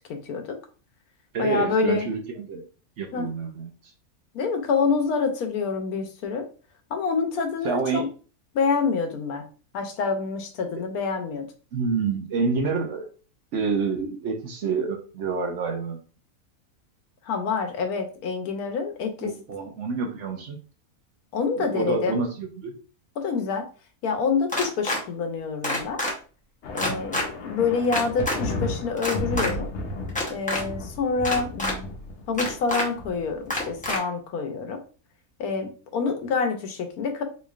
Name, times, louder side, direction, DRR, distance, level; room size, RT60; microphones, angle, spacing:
voice 1, 0.1-0.6 1.4-2.1 3.1-3.3 4.3-6.5 6.9-8.1 8.5-9.5 9.7-11.4 17.2-19.3 21.3-22.2 23.2-23.7 24.0-26.0 26.7-29.7 30.3-31.8 32.3-34.8 35.4-37.2, left 5 dB, 90° left, 6 dB, 1.2 m, -27 dB
voice 2, 1.3-2.6 3.0-3.7 7.6-8.1 11.7-13.1 13.5-16.0 19.2-20.6 21.6-22.7, right 4 dB, 60° right, 4 dB, 0.9 m, -28 dB
sound 1, 24.5-25.0 25.6-26.1 26.8-27.2 27.9-28.4 29.0-29.5 30.1-30.6 31.2-31.7 32.4-32.8 33.5-34.0, left 1 dB, 10° left, 0.5 m, -26 dB
sound 2, 26.6-34.0, left 2 dB, 60° left, 0.9 m, -34 dB
3.8 x 3.1 x 2.4 m, 0.37 s
omnidirectional pair, 1.5 m